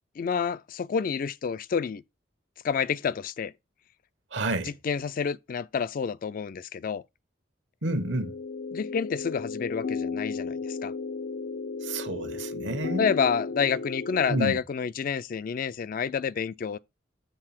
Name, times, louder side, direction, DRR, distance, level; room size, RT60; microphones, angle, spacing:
voice 1, 0.2-2.0 2.6-3.5 4.6-7.0 8.7-10.9 13.0-16.8, left 6 dB, 50° left, 0.3 m, -29 dB
voice 2, 4.3-4.7 7.8-8.3 11.8-13.1 14.3-14.6, right 2 dB, 80° right, 1.2 m, -29 dB
sound 1, 7.8-14.4, left 4 dB, 75° left, 0.7 m, -34 dB
6.8 x 4.0 x 5.8 m
head